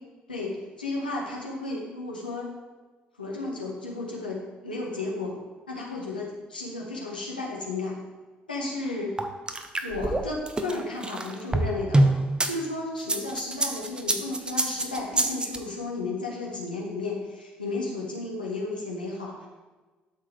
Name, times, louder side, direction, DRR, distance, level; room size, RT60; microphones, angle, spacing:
voice 1, 0.3-2.5 3.2-5.4 5.7-8.0 8.5-9.2 9.8-12.1 12.4-19.5, left 2 dB, 90° left, -2 dB, 1.5 m, -33 dB
sound 1, 9.2-12.5 13.0-15.6, right 2 dB, 20° right, 1.1 m, -25 dB
12.5 x 6.1 x 3.5 m, 1.3 s
figure-of-eight pair, 50°, 5 cm